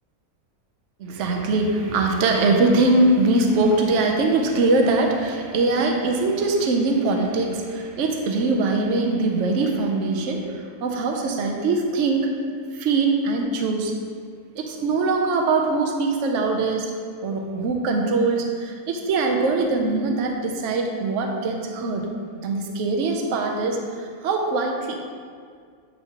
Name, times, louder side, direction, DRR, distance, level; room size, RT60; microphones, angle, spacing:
voice 1, 1.0-12.3 12.7-13.9 14.5-16.9 17.2-22.1 22.4-24.9, right 3 dB, 60° right, 2 dB, 0.9 m, -22 dB
7.8 x 4.2 x 2.9 m, 2.1 s
omnidirectional pair, 1.6 m